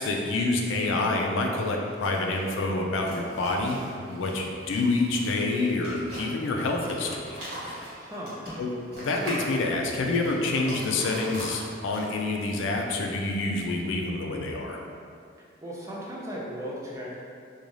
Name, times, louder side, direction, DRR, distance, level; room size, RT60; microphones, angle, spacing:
voice 1, 0.0-3.8 4.1-7.8 8.6-8.7 9.0-14.8, left 2 dB, 85° left, 1 dB, 0.3 m, -27 dB
sound 1, 1.8-12.4, equal, 55° right, 1.0 m, -41 dB
voice 2, 7.9-8.4 15.6-17.2, equal, 15° right, -5 dB, 0.3 m, -36 dB
2.5 x 2.2 x 3.1 m, 2.3 s
head